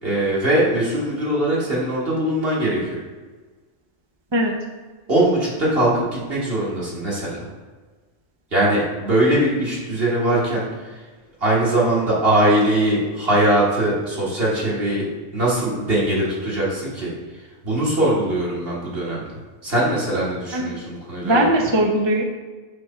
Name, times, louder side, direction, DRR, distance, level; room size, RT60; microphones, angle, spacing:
voice 1, 0.0-2.8 5.1-7.3 8.5-10.7 11.4-15.1 15.3-17.1 17.6-19.2 19.6-21.5, right 1 dB, 50° right, -6 dB, 2.2 m, -21 dB
voice 2, 21.2-22.2, right 1 dB, 30° right, 1 dB, 0.6 m, -19 dB
7.7 x 3.4 x 5.7 m, 1.3 s
omnidirectional pair, 1.3 m